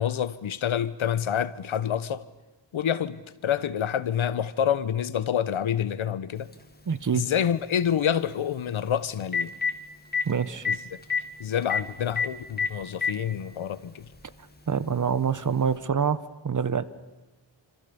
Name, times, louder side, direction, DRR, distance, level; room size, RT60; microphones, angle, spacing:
voice 1, 0.0-2.2 2.7-6.5 7.1-9.5 10.7-10.8 11.4-14.0, left 9 dB, 80° left, 1.1 m, -27 dB
Telephone, 6.5-6.6 8.8-8.9 9.2-9.7 10.1-10.2 10.6-10.8 11.0-11.2 11.7-11.8 12.2-12.3 12.6-13.1 14.1-14.2 15.7-15.8, left 6 dB, 20° left, 1.8 m, -25 dB
voice 2, 6.9-7.2 10.3-10.7 14.7-16.8, right 6 dB, 40° right, 1.0 m, -26 dB
27.0 x 26.5 x 7.0 m
wide cardioid pair, 140°, 47 cm